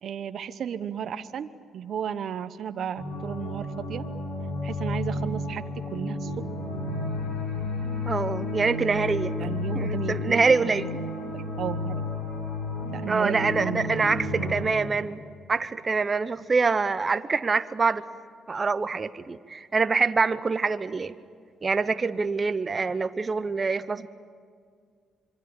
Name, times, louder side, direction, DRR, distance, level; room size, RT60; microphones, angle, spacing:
voice 1, 0.0-4.1 4.6-6.4 9.4-10.7 11.3-12.1 12.9-13.9 14.3-14.6, right 8 dB, 65° right, 11 dB, 1.0 m, -34 dB
sound 1, 3.0-14.7, left 2 dB, 80° left, 7.5 m, -32 dB
voice 2, 8.1-9.4 9.7-10.9 13.1-15.2 15.5-18.0 18.5-21.1 21.6-24.1, right 4 dB, 30° right, 12 dB, 0.8 m, -25 dB
26.0 x 24.0 x 8.8 m, 2.1 s
cardioid pair, 90°, 0 cm